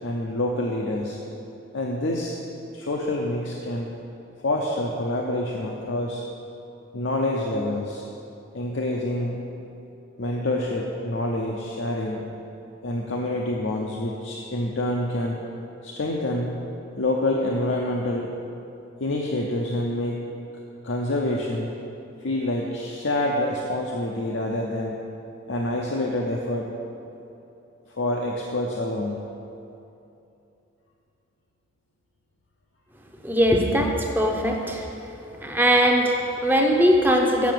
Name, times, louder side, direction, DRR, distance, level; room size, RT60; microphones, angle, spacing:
voice 1, 0.0-1.2 1.7-2.3 2.7-3.9 4.4-6.2 6.9-8.0 8.5-9.4 10.2-12.2 12.8-15.4 15.8-16.5 17.0-18.3 19.0-20.2 20.8-21.7 22.2-25.0 25.5-26.7 27.9-29.2, left 1 dB, 65° left, -1 dB, 0.7 m, -27 dB
voice 2, 33.2-34.9 35.4-37.5, equal, 10° right, 1 dB, 0.7 m, -20 dB
7.1 x 7.0 x 7.7 m, 2.8 s
head